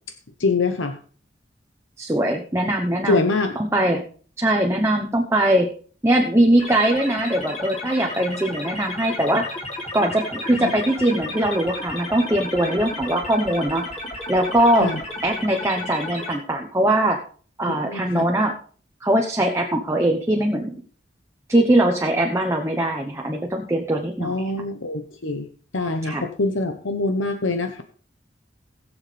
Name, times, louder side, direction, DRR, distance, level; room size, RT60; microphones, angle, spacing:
voice 1, 0.4-1.0 3.1-3.6 10.6-10.7 14.8-15.0 17.7-18.3 24.2-25.5 25.7-27.8, left 3 dB, 90° left, 7 dB, 0.9 m, -24 dB
voice 2, 2.0-3.2 3.6-4.0 4.4-5.7 6.0-9.5 9.9-13.8 14.3-14.9 15.2-17.2 17.6-18.5 19.0-20.8 21.5-24.5 26.0-26.2, right 1 dB, 15° right, 2 dB, 1.0 m, -21 dB
sound 1, 6.6-16.4, left 1 dB, 35° left, 3.0 m, -33 dB
20.0 x 7.2 x 3.4 m, 0.43 s
head